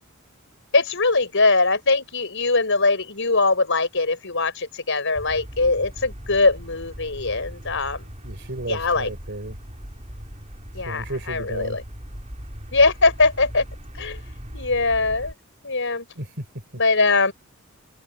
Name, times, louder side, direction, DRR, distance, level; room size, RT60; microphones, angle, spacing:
voice 1, 0.7-8.1 8.7-9.1 10.7-11.8 12.7-13.6 14.0-14.2 14.5-15.3 15.6-16.1 16.8-17.3, left 3 dB, 55° left, 6.5 m, -21 dB
sound 1, 5.1-15.3, equal, 30° right, 7.3 m, -39 dB
voice 2, 8.2-9.6 10.9-11.8 16.2-16.6, right 1 dB, 55° right, 5.4 m, -33 dB
head